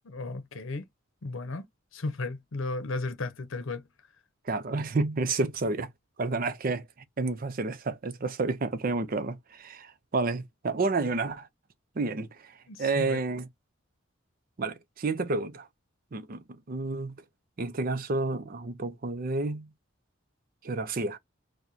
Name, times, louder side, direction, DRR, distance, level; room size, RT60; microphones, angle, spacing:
voice 1, 0.0-0.8 1.2-1.6 1.9-3.8 12.7-13.2, left 3 dB, 75° left, 0.7 m, -34 dB
voice 2, 4.5-5.9 6.2-6.8 7.2-11.5 12.0-12.5 12.8-13.5 14.6-15.7 16.1-17.2 17.6-19.7 20.6-21.2, right 3 dB, 45° right, 0.5 m, -30 dB
4.7 x 2.2 x 2.7 m
head